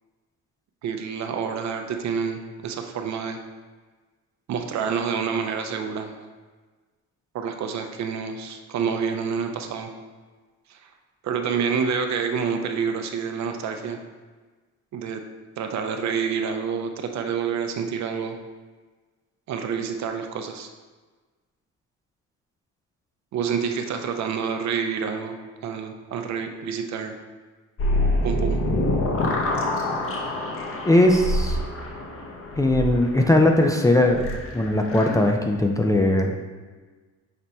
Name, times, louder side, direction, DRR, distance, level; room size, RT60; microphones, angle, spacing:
voice 1, 0.8-3.4 4.5-6.1 7.3-9.9 10.7-10.9 11.2-14.0 14.9-15.2 15.6-18.4 19.5-20.7 23.3-25.4 25.6-27.1 28.2-28.6, right 6 dB, 65° right, 5 dB, 0.5 m, -28 dB
sound 1, 27.8-35.3, left 1 dB, 45° left, 0.7 m, -26 dB
voice 2, 30.9-31.6 32.6-34.2 34.5-36.4, left 1 dB, 10° left, 2 dB, 0.4 m, -19 dB
5.9 x 2.1 x 4.0 m, 1.4 s
cardioid pair, 90°, 30 cm